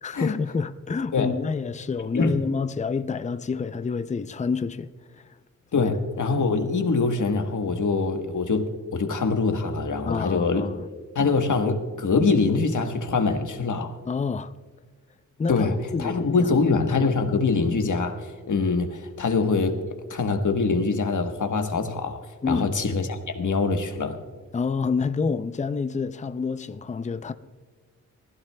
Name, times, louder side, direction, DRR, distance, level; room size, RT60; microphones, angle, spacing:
voice 1, 0.0-4.9 5.1-5.2 5.8-5.9 10.1-10.9 14.1-14.5 15.4-16.6 22.4-22.7 24.5-27.3, left 5 dB, 25° left, 0.4 m, -28 dB
voice 2, 5.7-10.7 11.1-13.9 15.5-19.8 20.1-22.2 22.5-24.2, left 4 dB, 70° left, 1.3 m, -24 dB
19.5 x 15.5 x 2.3 m
wide cardioid pair, 85°, 32 cm